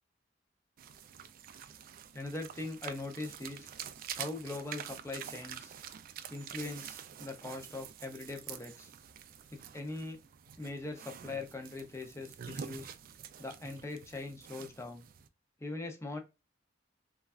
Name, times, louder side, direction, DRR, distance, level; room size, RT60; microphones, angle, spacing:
sound 1, 0.8-15.3, right 8 dB, 50° right, 0.3 m, -47 dB
voice 1, 2.1-3.7 4.2-5.8 6.3-8.9 9.5-10.2 10.6-12.9 13.4-15.0 15.6-16.2, left 2 dB, 15° left, 4 dB, 0.5 m, -41 dB
3.1 x 2.3 x 2.2 m, 0.26 s
head